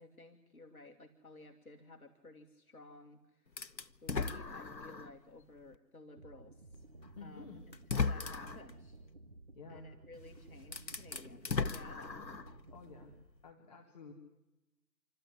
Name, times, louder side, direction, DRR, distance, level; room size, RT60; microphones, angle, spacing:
voice 1, 0.0-3.7 4.0-6.8 7.2-9.0 9.7-12.2, left 2 dB, 60° left, 3 dB, 2.1 m, -55 dB
sound 1, 3.6-5.2 5.7-5.8 7.0-7.1 7.7-8.7 10.1-10.2 10.6-12.6, left 4 dB, 90° left, 1.1 m, -37 dB
sound 2, 6.2-13.2, right 2 dB, 35° right, 0.8 m, -56 dB
voice 2, 7.2-7.6 9.6-9.9 12.7-13.1 13.4-14.1, left 5 dB, 25° left, 0 dB, 2.2 m, -51 dB
27.5 x 13.0 x 9.9 m, 0.98 s
figure-of-eight pair, 155°, 50 cm